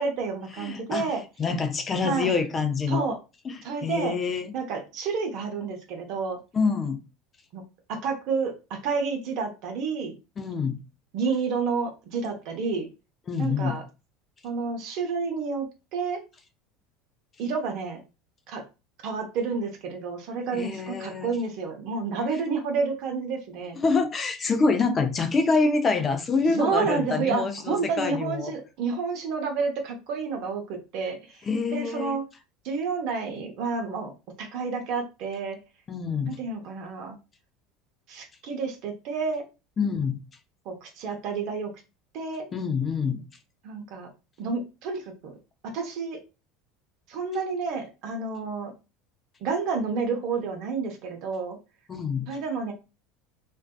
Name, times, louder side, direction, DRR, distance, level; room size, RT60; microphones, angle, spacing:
voice 1, 0.0-1.2 2.0-2.3 2.9-3.2 3.6-4.2 4.5-6.4 7.5-7.6 7.9-10.2 11.1-12.9 13.4-13.8 14.4-16.2 17.4-18.0 18.5-18.6 19.0-23.8 26.5-32.2 32.6-34.1 34.4-35.6 36.3-37.2 38.1-39.4 40.6-41.7 42.1-42.5 43.6-44.1 44.4-45.4 45.6-46.2 47.1-48.7 49.4-51.6 52.3-52.7, right 4 dB, 60° right, 0.7 m, -30 dB
voice 2, 0.6-1.1 1.4-3.1 3.4-4.5 6.5-7.0 10.4-10.8 13.3-13.8 20.5-21.3 23.7-28.5 31.5-32.2 35.9-36.4 39.8-40.2 42.5-43.3 51.9-52.3, left 4 dB, 30° left, 0.5 m, -26 dB
2.5 x 2.2 x 2.2 m
hypercardioid pair, 80°, 0 cm